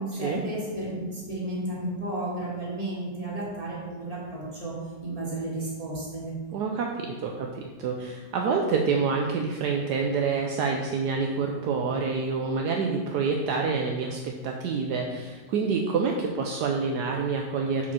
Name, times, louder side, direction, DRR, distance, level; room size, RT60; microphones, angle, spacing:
voice 1, 0.0-6.6, right 1 dB, 20° right, -6 dB, 2.3 m, -33 dB
voice 2, 6.5-17.9, right 5 dB, 70° right, 1 dB, 1.2 m, -27 dB
6.4 x 4.9 x 5.6 m, 1.4 s
omnidirectional pair, 1.9 m